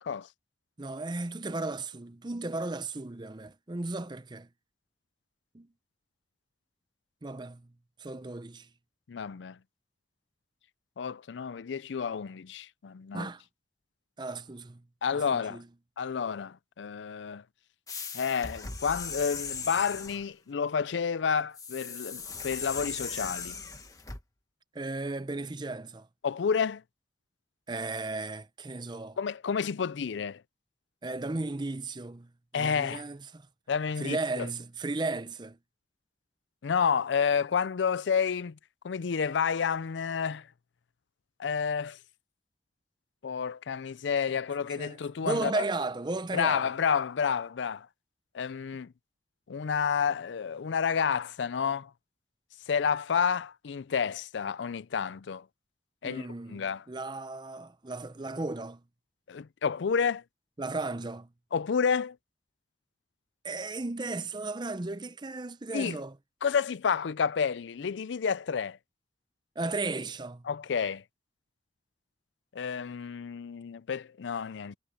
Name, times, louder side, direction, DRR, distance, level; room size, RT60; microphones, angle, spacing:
voice 1, 0.8-4.5 5.5-5.7 7.2-7.7 8.0-8.7 13.1-13.4 14.2-14.8 15.3-15.6 24.7-26.1 27.7-29.2 31.0-33.4 34.0-35.6 44.8-45.0 45.2-46.7 56.0-58.8 60.6-61.3 63.4-66.1 69.6-70.4, right 2 dB, 25° right, 0.6 m, -35 dB
voice 2, 9.1-9.6 11.0-13.3 15.0-15.6 16.0-17.4 18.1-23.6 26.2-26.8 29.2-30.4 32.5-33.0 33.7-34.5 36.6-38.6 38.8-40.5 41.4-42.0 43.2-45.6 46.3-47.9 48.3-48.9 49.5-51.9 52.7-55.5 56.0-56.8 59.3-60.2 61.5-62.2 65.7-66.0 66.4-68.8 70.5-71.0 72.5-74.7, left 6 dB, 85° left, 0.5 m, -30 dB
sound 1, 17.9-20.3 21.5-24.2, left 5 dB, 20° left, 1.5 m, -38 dB
head